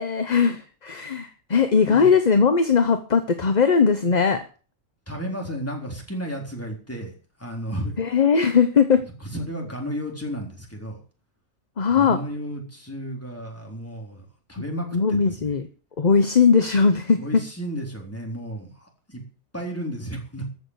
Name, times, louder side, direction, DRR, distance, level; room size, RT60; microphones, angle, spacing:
voice 1, 0.0-4.4 8.0-9.0 11.8-12.2 14.9-15.7 16.0-17.4, left 5 dB, 35° left, 9 dB, 0.9 m, -19 dB
voice 2, 5.1-7.1 7.4-8.0 9.2-11.0 11.9-15.5 17.2-19.2 19.5-20.5, equal, 10° left, 0 dB, 3.9 m, -33 dB
14.5 x 6.5 x 8.2 m, 0.39 s
omnidirectional pair, 1.5 m